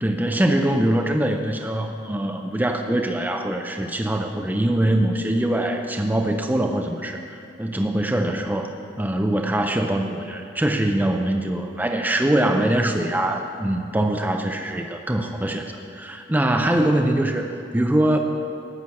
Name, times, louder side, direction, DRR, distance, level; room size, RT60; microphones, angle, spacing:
voice 1, 0.0-18.2, right 1 dB, 10° right, 4 dB, 0.5 m, -23 dB
13.0 x 6.1 x 8.6 m, 2.4 s
head